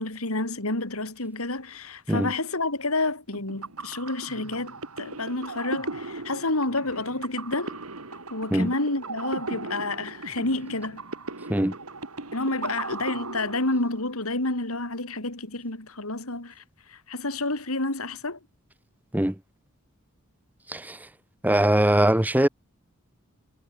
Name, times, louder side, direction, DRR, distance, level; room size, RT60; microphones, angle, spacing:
voice 1, 0.0-7.8 8.3-11.0 12.3-18.4, left 2 dB, 75° left, 4.1 m, -29 dB
sound 1, 3.3-14.2, right 3 dB, 85° right, 3.5 m, -37 dB
voice 2, 20.7-21.1 21.4-22.5, right 1 dB, 10° right, 0.7 m, -22 dB
head